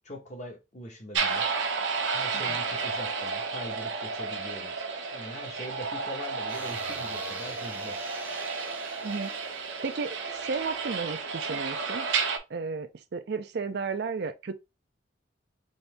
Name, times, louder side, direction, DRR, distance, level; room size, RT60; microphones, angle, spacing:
voice 1, 0.0-1.5 2.1-4.7 5.1-8.0, equal, 40° left, 1.1 m, -42 dB
sound 1, 1.1-12.4, right 5 dB, 80° right, 0.9 m, -32 dB
sound 2, 6.5-11.8, right 2 dB, 10° right, 0.7 m, -46 dB
voice 2, 9.8-12.1 12.5-14.5, right 4 dB, 60° right, 0.5 m, -33 dB
4.1 x 2.7 x 3.3 m
head